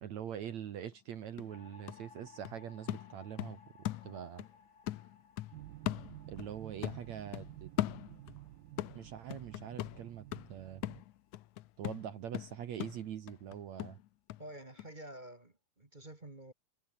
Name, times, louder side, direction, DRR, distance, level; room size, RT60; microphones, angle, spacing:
voice 1, 0.0-3.6 4.0-4.4 6.3-7.7 8.9-10.8 11.8-14.0, right 9 dB, 60° right, 2.1 m, -43 dB
sound 1, 0.9-1.0 1.4-4.5 4.9-6.6 6.8-8.4 8.8-14.4 14.8-14.9, left 15 dB, 85° left, 1.7 m, -40 dB
sound 2, 1.5-11.8, left 5 dB, 30° left, 3.5 m, -62 dB
sound 3, 5.5-11.0, right 16 dB, 75° right, 2.5 m, -51 dB
voice 2, 14.4-16.5, right 1 dB, 20° right, 1.4 m, -49 dB
omnidirectional pair, 4.5 m